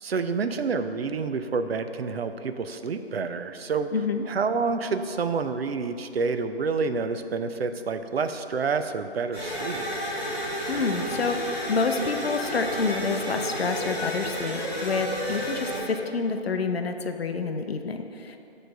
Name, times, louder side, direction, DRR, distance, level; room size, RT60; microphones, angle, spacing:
voice 1, 0.0-3.9 4.3-9.9, right 4 dB, 70° right, 9 dB, 0.5 m, -28 dB
voice 2, 3.9-4.2 10.7-18.4, left 4 dB, 70° left, 6 dB, 0.6 m, -28 dB
sound 1, 9.3-15.8, equal, 10° right, 1.6 m, -31 dB
8.6 x 3.3 x 5.2 m, 2.8 s
figure-of-eight pair, 160°, 32 cm